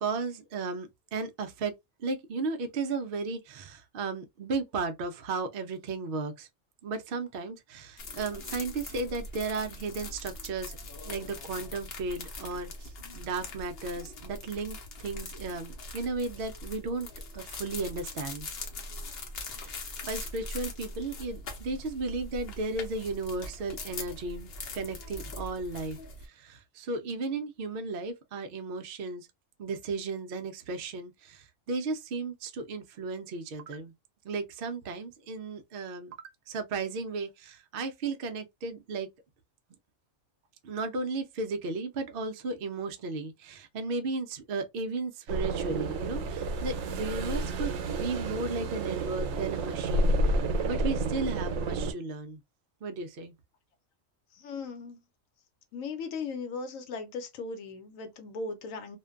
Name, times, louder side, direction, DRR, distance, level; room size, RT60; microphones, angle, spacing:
voice 1, 0.0-1.7 2.0-6.5 6.8-10.8 11.1-17.1 17.3-18.5 19.6-29.3 29.6-33.9 34.2-36.2 36.5-39.1 40.6-52.4 52.8-53.3, right 3 dB, 65° right, 0.6 m, -35 dB
sound 1, 8.0-26.3, left 2 dB, 55° left, 0.8 m, -42 dB
sound 2, 45.3-51.9, right 2 dB, 85° right, 1.0 m, -30 dB
voice 2, 54.3-55.0 55.7-59.0, left 4 dB, 80° left, 1.0 m, -38 dB
2.5 x 2.2 x 2.3 m
omnidirectional pair, 1.4 m